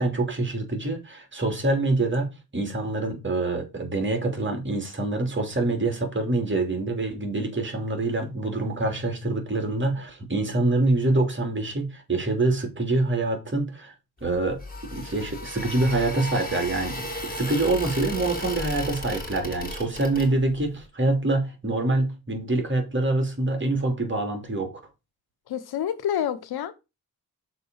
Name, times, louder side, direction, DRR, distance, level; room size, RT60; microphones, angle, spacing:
voice 1, 0.0-13.9 14.2-14.6 14.9-24.8, right 2 dB, 30° right, 3.1 m, -25 dB
sound 1, 14.2-20.7, left 1 dB, 25° left, 3.0 m, -35 dB
voice 2, 25.5-26.7, left 10 dB, 90° left, 1.0 m, -28 dB
6.8 x 4.1 x 5.5 m
cardioid pair, 70°, 37 cm